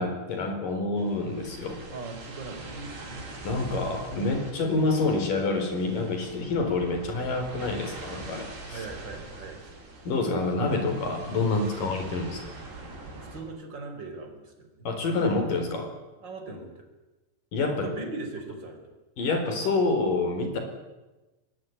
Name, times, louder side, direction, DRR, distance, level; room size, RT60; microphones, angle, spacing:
voice 1, 0.0-1.8 3.4-8.8 10.0-12.5 14.8-15.9 17.5-17.9 19.2-20.6, left 3 dB, 55° left, 6 dB, 5.9 m, -27 dB
sound 1, 1.0-13.4, right 2 dB, 85° right, 8.2 m, -43 dB
voice 2, 1.9-3.3 8.7-9.7 11.7-11.9 13.2-14.9 16.2-16.9 17.8-18.9, right 3 dB, 25° right, 4 dB, 4.8 m, -40 dB
23.5 x 20.5 x 9.6 m, 1.1 s
omnidirectional pair, 4.8 m